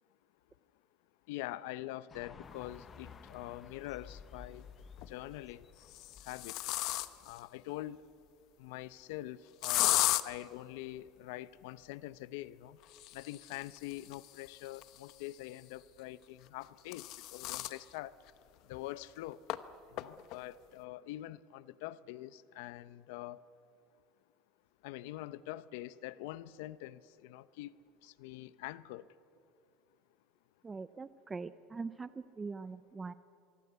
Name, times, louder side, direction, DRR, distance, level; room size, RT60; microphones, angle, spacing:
voice 1, 1.3-4.7 5.1-5.7 6.3-6.6 7.2-8.0 8.6-12.8 13.1-18.1 18.7-19.4 19.9-23.4 24.8-27.7 28.0-29.0, left 15 dB, 80° left, 17 dB, 0.7 m, -44 dB
sound 1, 2.1-7.4, left 6 dB, 25° left, 0.9 m, -54 dB
sound 2, 3.2-3.3 4.8-5.2 5.8-7.4 9.6-10.2 12.8-15.4 16.5-17.8 18.3-18.4 18.7-18.8 19.5-19.6 20.0-20.4, left 17 dB, 55° left, 0.9 m, -35 dB
voice 2, 30.6-33.1, right 4 dB, 15° right, 14 dB, 0.5 m, -42 dB
24.5 x 23.5 x 8.1 m, 2.6 s
cardioid pair, 150°, 0 cm